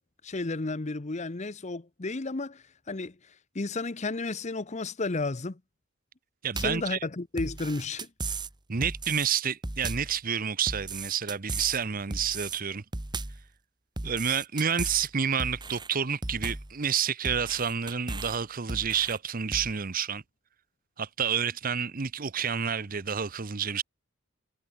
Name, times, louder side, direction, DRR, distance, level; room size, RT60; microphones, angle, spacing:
voice 1, 0.2-5.6 6.6-8.1, left 3 dB, 35° left, 0.8 m, -33 dB
voice 2, 6.4-7.0 8.7-12.8 14.0-20.2 21.0-23.8, right 7 dB, 45° right, 0.8 m, -29 dB
sound 1, 6.6-6.9 7.4-8.5 8.8-9.3 9.6-10.1 10.7-11.8 12.1-12.6 12.9-13.4 14.0-15.1 15.4-15.9 16.2-16.7 17.2-18.4 18.7-19.2 19.5-19.7, right 3 dB, 20° right, 1.3 m, -35 dB
head